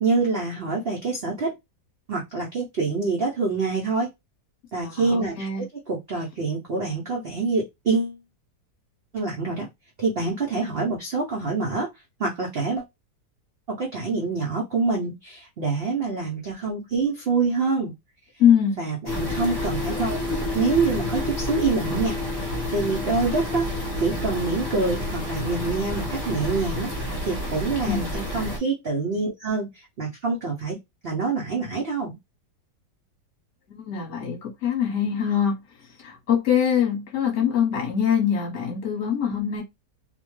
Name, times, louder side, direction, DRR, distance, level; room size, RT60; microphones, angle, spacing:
voice 1, 0.0-1.5 2.1-4.1 4.7-8.2 9.1-9.7 10.0-11.9 12.2-12.8 13.7-17.9 18.8-26.9 27.2-30.8 31.0-32.2, right 4 dB, 70° right, 0.5 m, -26 dB
voice 2, 4.8-5.6 18.4-18.8 27.9-28.1 33.7-35.6 36.0-39.6, left 8 dB, 45° left, 1.2 m, -23 dB
sound 1, 19.1-28.6, left 2 dB, 15° left, 0.9 m, -29 dB
2.8 x 2.1 x 3.0 m
omnidirectional pair, 1.8 m